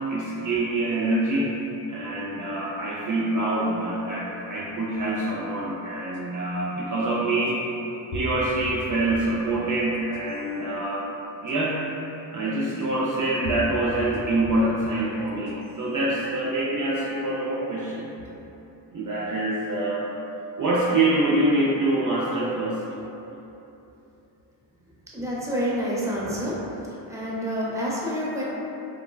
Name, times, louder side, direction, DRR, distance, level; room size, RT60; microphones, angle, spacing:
voice 1, 0.1-1.5 1.9-7.6 8.1-11.1 11.4-11.8 12.3-18.1 18.9-20.1 20.6-22.8, right 2 dB, 45° right, -6 dB, 0.4 m, -25 dB
sound 1, 6.1-6.2 7.5-7.6 8.1-9.4 9.9-10.5 11.5-11.6 12.8-12.9 13.4-14.8 15.3-15.8, left 1 dB, 60° left, 0.6 m, -37 dB
voice 2, 25.1-26.6 27.1-28.4, equal, 5° right, -7 dB, 0.6 m, -28 dB
3.2 x 2.1 x 2.2 m, 3.0 s
supercardioid pair, 50°, 47 cm